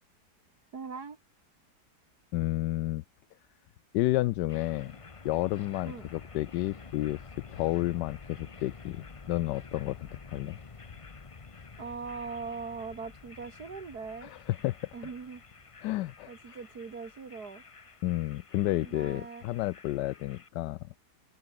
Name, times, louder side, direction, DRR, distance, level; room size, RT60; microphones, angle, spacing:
voice 1, 0.7-1.2 5.9-6.1 11.8-14.3 14.9-15.4 16.3-17.6 18.7-19.4, right 5 dB, 65° right, 2.7 m, -41 dB
voice 2, 2.3-3.0 3.9-5.0 5.2-10.6 14.2-14.8 15.8-16.3 18.0-20.9, left 17 dB, 85° left, 1.2 m, -31 dB
sound 1, 4.5-20.5, left 4 dB, 25° left, 0.7 m, -50 dB
omnidirectional pair, 1.8 m